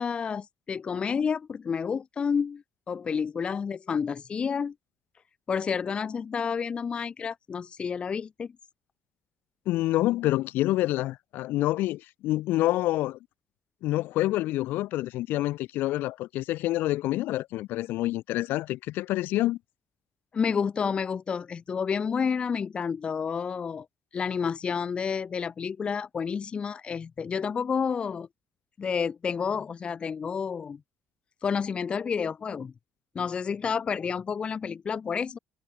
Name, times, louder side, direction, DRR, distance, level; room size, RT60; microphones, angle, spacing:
voice 1, 0.0-4.7 5.5-8.5 20.3-23.9 24.1-28.3 28.8-30.8 31.4-32.7 33.1-35.4, left 6 dB, 30° left, 0.6 m, -30 dB
voice 2, 9.7-13.2 13.8-19.6, left 16 dB, 85° left, 2.1 m, -27 dB
cardioid pair, 130°, 3 cm